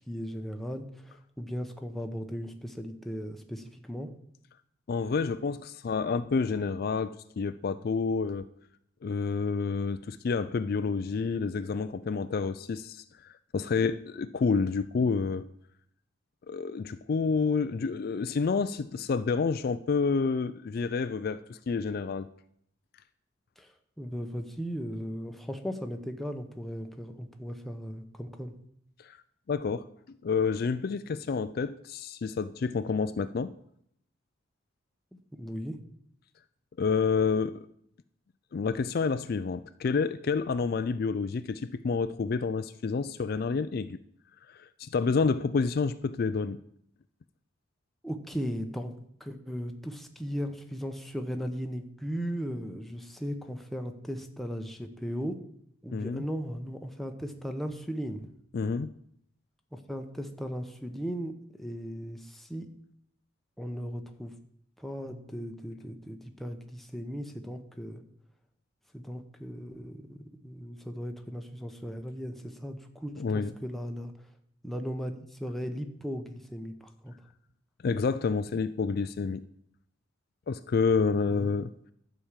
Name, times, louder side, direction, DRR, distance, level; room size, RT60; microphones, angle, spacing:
voice 1, 0.0-4.1 23.6-28.5 35.1-35.8 48.0-48.9 49.2-55.4 55.8-58.3 59.7-62.7 63.6-64.3 64.8-68.0 68.9-70.2 70.4-74.1 74.6-77.1 81.3-81.5, equal, ahead, 0.8 m, -37 dB
voice 2, 4.9-8.5 9.0-15.5 16.5-22.3 29.0-29.2 29.5-29.9 30.2-33.5 36.8-37.6 38.5-44.0 44.5-46.6 55.9-56.2 58.5-58.9 73.2-73.5 77.8-79.4 80.5-81.7, left 5 dB, 50° left, 0.4 m, -29 dB
11.5 x 4.9 x 7.4 m
head